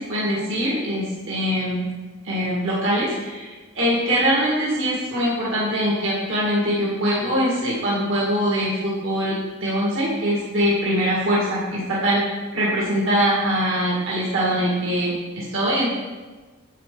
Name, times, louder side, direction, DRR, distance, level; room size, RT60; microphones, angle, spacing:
voice 1, 0.0-1.9 2.2-15.9, equal, 60° right, -6 dB, 1.9 m, -23 dB
9.3 x 7.7 x 3.8 m, 1.3 s
head